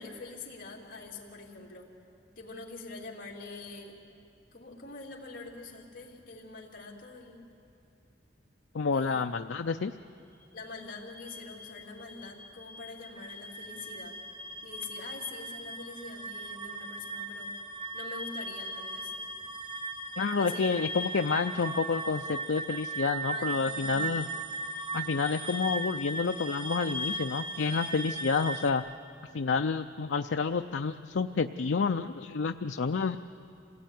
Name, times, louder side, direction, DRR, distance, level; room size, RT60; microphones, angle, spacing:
voice 1, 0.0-1.9 2.4-4.0 4.5-7.4 8.9-9.3 10.5-14.2 14.6-17.5 17.9-19.1 20.4-20.7 23.3-24.3, left 3 dB, 50° left, -2 dB, 3.2 m, -45 dB
voice 2, 8.7-9.9 20.2-24.3 24.9-28.8 29.3-33.2, left 4 dB, 75° left, 7 dB, 0.5 m, -29 dB
sound 1, 10.8-28.7, right 2 dB, 30° right, 1.6 m, -38 dB
27.0 x 17.5 x 9.3 m, 2.6 s
head